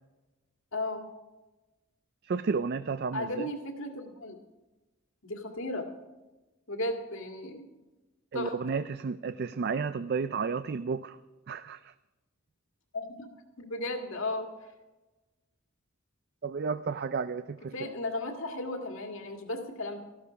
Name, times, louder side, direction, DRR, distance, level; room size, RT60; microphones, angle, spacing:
voice 1, 0.7-1.1 3.1-4.4 5.2-5.9 6.7-7.7 8.3-8.8 12.9-13.3 13.6-14.5 17.7-20.0, left 2 dB, 65° left, 3 dB, 2.0 m, -35 dB
voice 2, 2.2-3.5 8.3-11.2 11.5-11.9 16.4-17.9, right 5 dB, 45° right, 13 dB, 0.4 m, -32 dB
14.5 x 12.5 x 5.0 m, 1.1 s
head